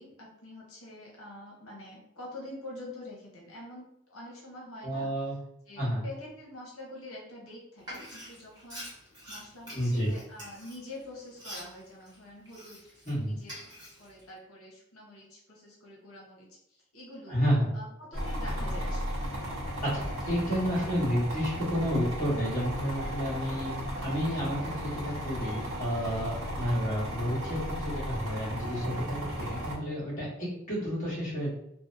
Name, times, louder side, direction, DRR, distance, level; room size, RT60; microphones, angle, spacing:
voice 1, 0.0-5.3 5.7-8.9 9.3-17.4 17.7-19.2, left 1 dB, 85° left, -3 dB, 0.8 m, -46 dB
voice 2, 4.8-5.4 5.8-6.0 9.7-10.1 13.0-13.3 17.3-17.7 19.8-31.6, equal, 35° left, -7 dB, 1.1 m, -30 dB
Frying (food), 7.8-13.1 13.4-14.3, equal, 20° right, 0.9 m, -46 dB
sound 1, 18.1-29.8, equal, 75° right, 0.7 m, -35 dB
2.7 x 2.0 x 2.4 m, 0.79 s
head